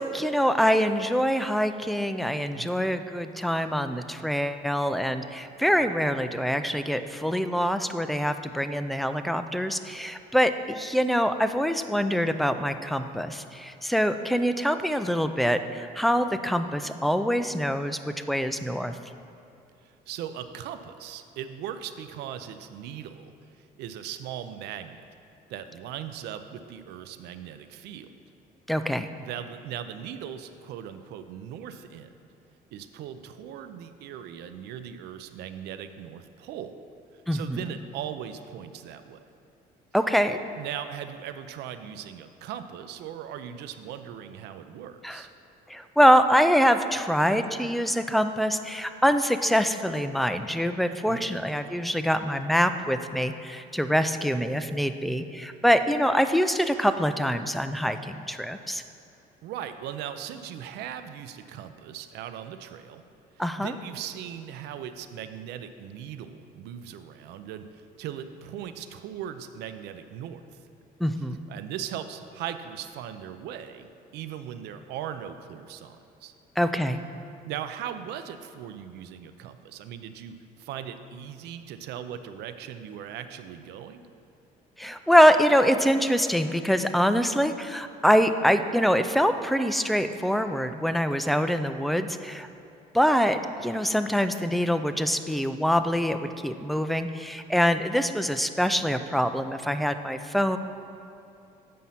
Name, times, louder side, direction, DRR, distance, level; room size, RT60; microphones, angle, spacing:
voice 1, 0.0-19.0 28.7-29.1 37.3-37.6 39.9-40.4 45.0-45.2 45.7-58.8 63.4-63.7 71.0-71.4 76.6-77.0 84.8-92.5 92.9-100.6, equal, ahead, 9 dB, 0.3 m, -24 dB
voice 2, 20.1-23.3 23.8-25.0 25.5-28.1 29.2-32.1 32.7-36.8 37.3-39.2 40.6-45.3 51.1-51.3 59.4-63.0 63.6-70.4 71.5-73.9 74.1-76.3 77.4-84.1, right 9 dB, 80° right, 10 dB, 0.5 m, -39 dB
7.5 x 5.4 x 5.7 m, 2.6 s
cardioid pair, 110°, 17 cm